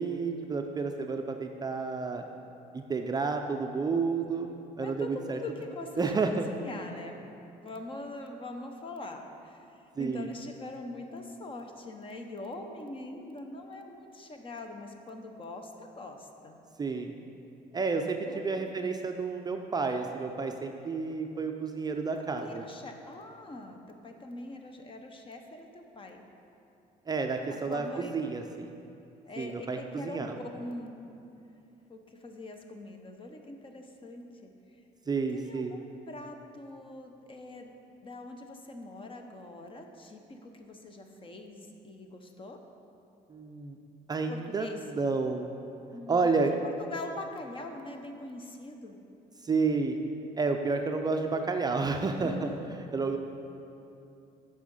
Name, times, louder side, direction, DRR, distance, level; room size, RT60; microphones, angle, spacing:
voice 1, 0.0-2.2 2.7-4.5 4.8-5.4 6.0-6.5 10.0-10.3 16.8-17.1 17.7-22.6 27.1-28.7 29.4-30.4 35.1-35.7 43.3-43.8 44.1-45.5 46.1-46.5 49.4-50.0 50.4-52.5 52.9-53.2, right 4 dB, 25° right, 4 dB, 0.4 m, -30 dB
voice 2, 4.8-7.3 7.6-16.6 18.2-18.7 22.2-26.2 27.5-28.2 29.3-31.0 31.9-34.5 35.1-37.8 38.0-42.6 44.3-44.8 45.9-46.3 46.6-49.0 52.2-52.6, left 2 dB, 30° left, 4 dB, 0.8 m, -43 dB
8.3 x 5.6 x 5.4 m, 2.7 s
cardioid pair, 110°, 17 cm